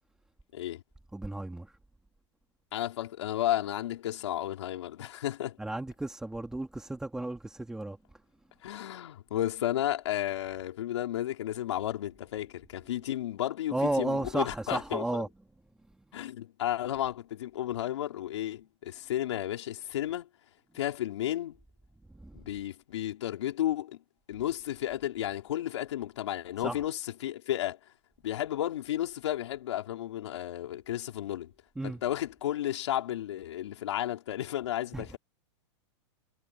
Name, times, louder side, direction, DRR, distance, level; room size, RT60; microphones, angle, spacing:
voice 1, 1.1-1.8 5.6-8.0 13.7-15.3 22.1-22.4 26.6-26.8 31.8-32.0 34.9-35.2, right 2 dB, 5° right, 2.2 m, -33 dB
voice 2, 2.7-5.6 8.6-15.2 16.1-20.3 20.7-21.6 22.3-24.0 24.3-27.8 28.2-31.5 31.8-35.2, left 12 dB, 75° left, 4.7 m, -33 dB
supercardioid pair, 150°, 15 cm